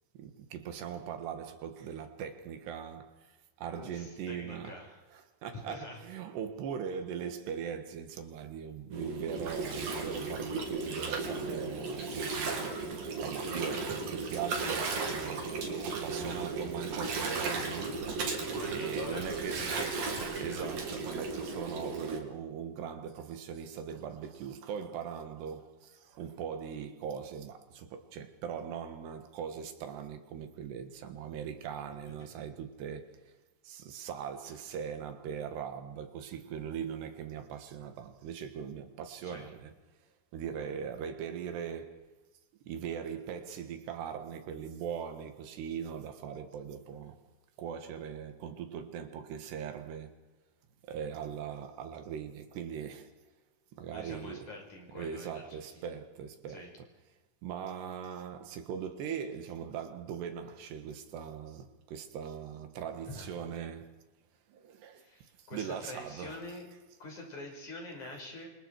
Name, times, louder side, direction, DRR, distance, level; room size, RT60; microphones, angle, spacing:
voice 1, 0.2-15.5 15.8-19.8 20.2-33.3 33.6-39.7 40.3-42.1 42.7-47.2 47.6-50.2 50.8-53.1 53.8-54.5 55.0-56.7 57.4-64.0 64.5-66.5, right 8 dB, 85° right, 3.9 m, -40 dB
voice 2, 3.8-5.0 5.5-6.0 13.5-14.0 18.5-20.8 39.2-39.5 53.9-55.9 56.5-56.7 63.1-63.3 64.9-66.7 67.0-68.5, left 2 dB, 45° left, 6.9 m, -46 dB
Gurgling, 8.9-22.2, right 4 dB, 60° right, 4.6 m, -35 dB
28.0 x 26.5 x 4.8 m
omnidirectional pair, 4.7 m